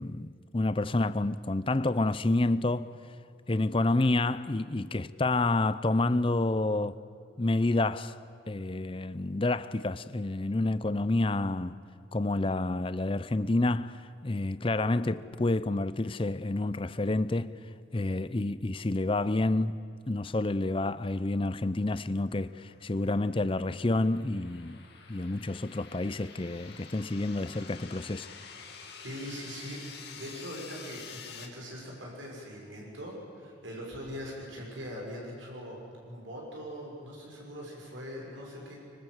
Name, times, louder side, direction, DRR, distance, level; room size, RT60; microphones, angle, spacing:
voice 1, 0.0-2.9 3.5-7.0 7.4-8.2 8.5-11.8 12.1-17.5 17.9-19.8 20.1-24.8 25.1-28.3, left 2 dB, 25° left, 0.6 m, -29 dB
sound 1, 22.5-31.5, left 6 dB, 55° left, 2.6 m, -48 dB
voice 2, 29.0-29.8 30.1-35.8 36.0-38.7, equal, 75° right, 6.6 m, -41 dB
25.0 x 24.0 x 8.1 m
head